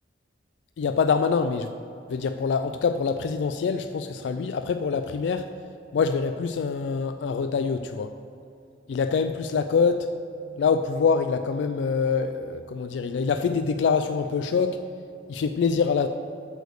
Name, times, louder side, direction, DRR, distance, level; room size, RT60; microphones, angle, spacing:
voice 1, 0.8-1.7 2.1-5.5 5.9-8.1 8.9-10.1 10.6-14.8 15.3-16.1, left 5 dB, 80° left, 9 dB, 0.3 m, -25 dB
8.0 x 5.1 x 6.5 m, 2.6 s
head